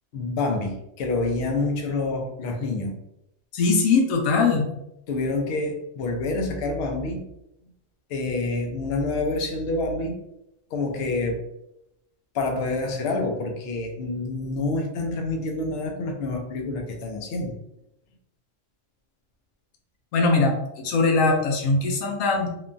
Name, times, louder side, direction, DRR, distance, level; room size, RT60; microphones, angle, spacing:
voice 1, 0.1-3.0 5.1-7.2 8.1-10.2 10.7-11.4 12.3-17.5, left 2 dB, 60° left, 2 dB, 0.7 m, -27 dB
voice 2, 3.5-4.7 20.1-22.5, left 3 dB, 85° left, 1 dB, 1.0 m, -21 dB
3.0 x 2.2 x 2.4 m, 0.83 s
omnidirectional pair, 1.3 m